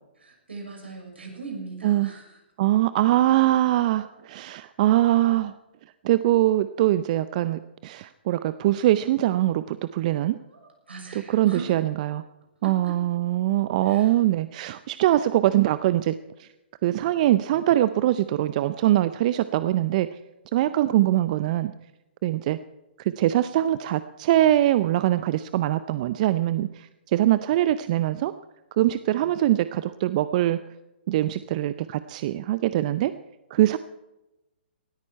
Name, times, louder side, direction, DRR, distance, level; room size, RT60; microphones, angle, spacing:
voice 1, 0.2-2.2 10.5-11.7 12.6-12.9 13.9-14.1, right 4 dB, 80° right, 0 dB, 6.6 m, -39 dB
voice 2, 2.6-5.6 6.0-10.4 11.1-12.2 12.6-16.5 16.8-20.1 20.5-21.7 22.2-22.6 23.0-28.3 28.7-30.6 31.1-33.1 33.5-33.8, right 14 dB, 40° right, 13 dB, 0.5 m, -23 dB
19.0 x 13.5 x 4.5 m, 0.98 s
figure-of-eight pair, 125°, 6 cm